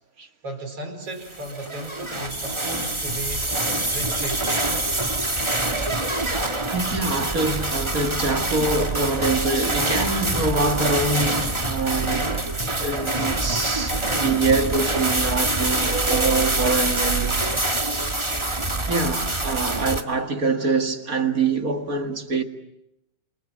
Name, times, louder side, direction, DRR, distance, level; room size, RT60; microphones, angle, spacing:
voice 1, 0.4-3.5 3.9-4.7, right 2 dB, 50° right, 5.6 m, -35 dB
sound 1, 1.3-20.0, right 2 dB, 15° right, 1.1 m, -25 dB
voice 2, 6.6-12.3 12.7-17.4 18.9-22.4, right 3 dB, 30° right, 2.0 m, -25 dB
28.0 x 27.0 x 7.4 m
omnidirectional pair, 3.4 m